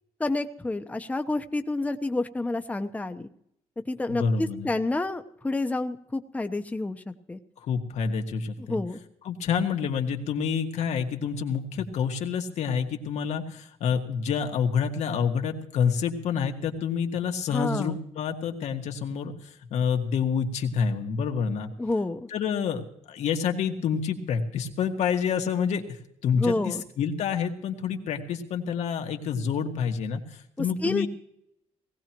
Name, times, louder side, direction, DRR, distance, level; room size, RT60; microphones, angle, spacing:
voice 1, 0.2-3.3 3.9-7.4 8.6-9.0 17.5-18.0 21.8-22.3 26.4-26.8 30.6-31.1, left 2 dB, 10° left, 7 dB, 0.9 m, -29 dB
voice 2, 4.1-4.7 7.6-8.8 9.2-21.7 22.3-31.1, left 6 dB, 85° left, 3 dB, 1.9 m, -28 dB
19.0 x 16.5 x 3.0 m, 0.74 s
cardioid pair, 105°, 12 cm